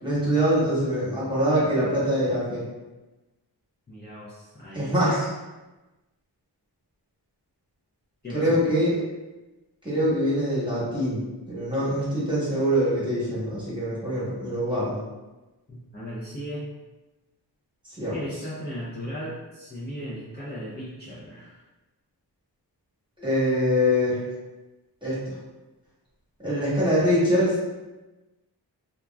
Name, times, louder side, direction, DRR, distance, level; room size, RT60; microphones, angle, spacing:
voice 1, 0.0-2.6 4.7-5.3 8.3-9.0 9.8-11.2 11.5-15.0 17.9-18.2 23.2-24.2 25.0-25.4 26.4-27.6, equal, 10° right, -9 dB, 1.2 m, -24 dB
voice 2, 3.9-5.2 8.2-8.6 15.7-16.7 18.1-21.6, equal, 25° left, -10 dB, 0.6 m, -36 dB
2.8 x 2.4 x 2.3 m, 1.1 s
wide cardioid pair, 105°, 42 cm